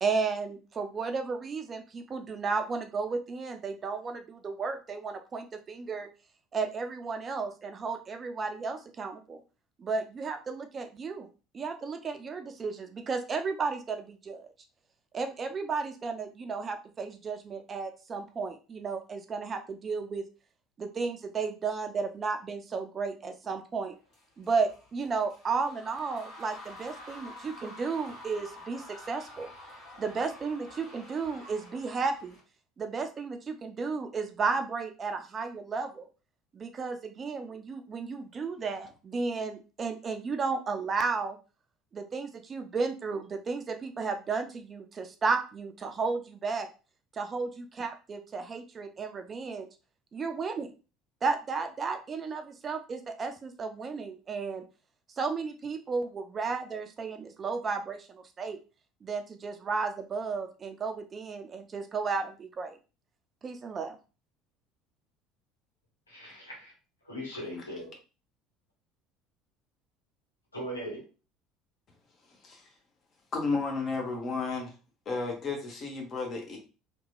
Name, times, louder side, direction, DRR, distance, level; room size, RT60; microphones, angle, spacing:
voice 1, 0.0-6.1 6.5-9.4 9.8-11.3 11.5-14.5 15.1-20.2 20.8-23.9 24.4-29.5 30.0-32.4 32.8-36.1 36.5-41.4 41.9-46.7 47.1-49.7 50.1-50.7 51.2-54.6 55.2-58.6 59.0-62.8 63.4-64.0, right 4 dB, 30° right, 0.4 m, -33 dB
sound 1, 24.1-32.4, left 1 dB, 55° left, 1.2 m, -48 dB
voice 2, 66.1-66.7 67.0-67.9 70.5-71.1, equal, 85° left, 1.0 m, -39 dB
voice 3, 73.3-74.7 75.1-76.6, left 4 dB, 35° left, 0.7 m, -32 dB
2.8 x 2.2 x 2.3 m
figure-of-eight pair, 65°, 0 cm